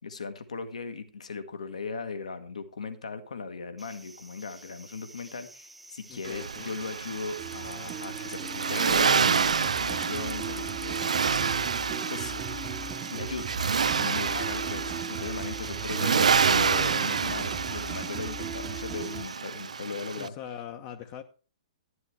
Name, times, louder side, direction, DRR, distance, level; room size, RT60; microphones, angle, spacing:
voice 1, 0.0-11.1 11.4-12.6 13.1-13.5 14.0-20.3, left 4 dB, 70° left, 9 dB, 1.4 m, -38 dB
sound 1, 3.8-19.4, right 1 dB, ahead, 1.0 m, -49 dB
voice 2, 6.1-6.7 20.2-21.2, left 9 dB, 35° left, 5 dB, 0.9 m, -41 dB
Accelerating revving vroom, 6.2-20.3, right 6 dB, 70° right, 0.4 m, -28 dB
sound 2, 7.4-19.2, right 5 dB, 20° right, 1.1 m, -39 dB
12.0 x 11.5 x 3.3 m, 0.37 s
figure-of-eight pair, 120°, 4 cm